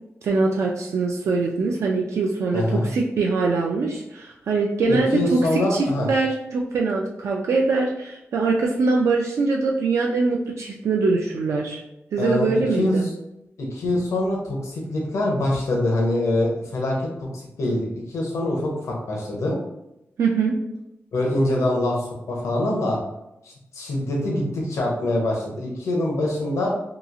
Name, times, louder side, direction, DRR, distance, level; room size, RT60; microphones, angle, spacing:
voice 1, 0.2-5.4 5.7-11.8 12.1-13.1 20.2-20.6, right 3 dB, 70° right, -1 dB, 0.3 m, -23 dB
voice 2, 2.5-2.9 4.9-6.1 12.2-12.5 12.8-13.1 13.6-19.6 21.1-23.0 23.4-26.7, left 1 dB, 80° left, -2 dB, 0.7 m, -24 dB
2.9 x 2.3 x 2.4 m, 0.87 s
wide cardioid pair, 150°, 5 cm